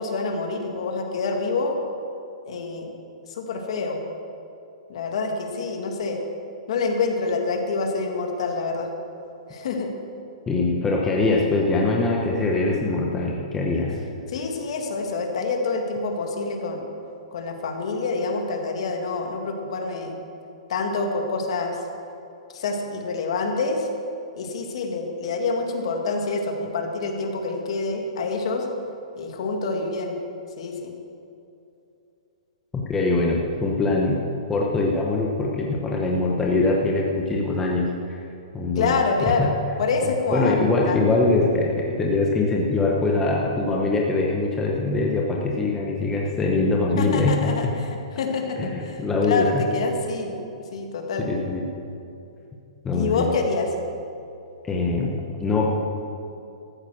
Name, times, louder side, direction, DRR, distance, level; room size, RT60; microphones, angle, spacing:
voice 1, 0.0-1.8 2.5-2.9 3.3-4.0 4.9-6.2 6.7-8.9 9.5-9.9 14.3-16.9 17.3-20.2 20.7-21.8 22.5-23.9 24.3-28.7 29.2-30.2 30.6-30.9 38.8-39.5 39.8-41.0 47.0-47.9 48.2-50.4 50.7-51.3 52.9-53.7, left 4 dB, 55° left, 3 dB, 1.9 m, -27 dB
voice 2, 10.5-14.0 32.7-34.2 34.5-38.2 38.5-39.0 39.4-39.5 40.3-47.8 48.6-49.7 51.2-51.7 52.8-53.3 54.6-55.7, left 3 dB, 10° left, -2 dB, 0.9 m, -23 dB
14.0 x 9.2 x 6.3 m, 2.7 s
hypercardioid pair, 165°, 4 cm